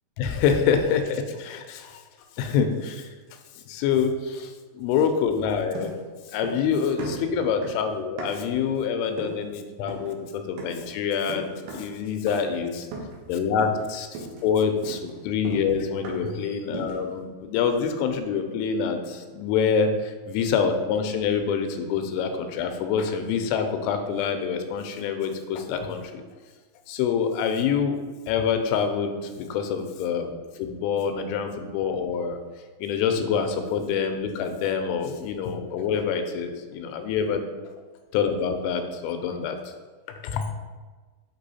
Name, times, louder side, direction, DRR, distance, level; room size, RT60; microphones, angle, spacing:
voice 1, 0.2-2.0 2.4-3.1 3.7-6.0 6.3-12.9 13.3-14.1 14.4-26.2 26.9-28.0 28.3-32.4 32.8-37.4 38.1-39.6 40.1-40.5, left 6 dB, 90° left, 6 dB, 3.0 m, -26 dB
sound 1, 5.7-6.7 7.0-8.6 9.2-9.5 9.9-10.2 10.6-10.9 11.3-12.0 12.3-12.6 12.9-13.3 13.6-13.9 14.1-16.4 16.7-17.1, right 2 dB, 85° right, 1.9 m, -37 dB
8.2 x 3.0 x 4.1 m, 1.4 s
omnidirectional pair, 5.4 m